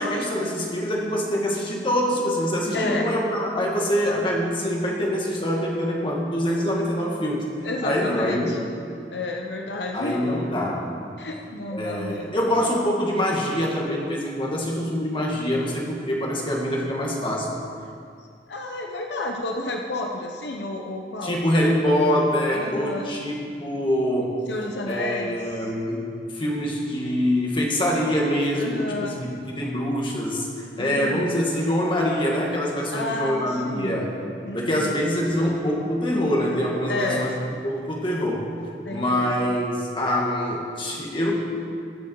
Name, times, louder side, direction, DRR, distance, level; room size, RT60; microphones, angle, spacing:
voice 1, 0.0-7.5 7.8-8.6 9.9-10.9 11.7-17.5 21.2-24.4 24.9-26.0 26.3-34.1 34.5-37.3 37.6-38.5 38.9-41.3, equal, 30° left, -3 dB, 2.1 m, -25 dB
voice 2, 2.7-3.1 7.6-8.7 9.1-10.4 11.2-12.3 18.5-21.5 22.5-23.1 24.5-25.4 28.5-29.2 30.8-31.2 32.9-34.0 34.4-34.9 36.9-37.3 38.8-39.5, left 2 dB, 75° left, 1 dB, 0.9 m, -31 dB
21.5 x 7.2 x 4.7 m, 2.4 s
head